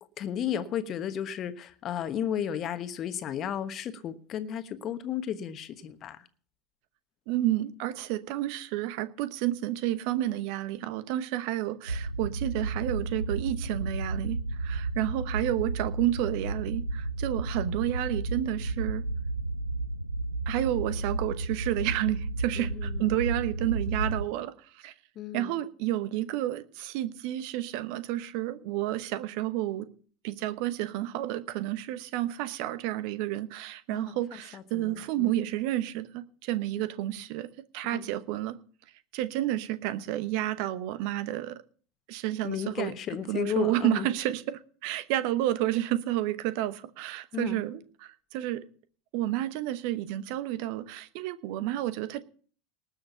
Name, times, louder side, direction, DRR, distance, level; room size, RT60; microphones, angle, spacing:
voice 1, 0.2-6.2 22.6-23.1 25.2-25.6 33.9-34.0 34.5-35.3 37.9-38.0 42.4-44.1 47.3-47.6, left 9 dB, 35° left, 1.2 m, -33 dB
voice 2, 7.3-19.0 20.5-24.9 25.3-29.9 30.2-38.6 39.1-41.6 42.1-42.9 43.3-48.6 49.1-52.2, right 14 dB, 55° right, 0.9 m, -30 dB
sound 1, 11.9-24.3, right 2 dB, 90° right, 0.5 m, -32 dB
19.5 x 6.6 x 5.6 m
figure-of-eight pair, 80°, 0 cm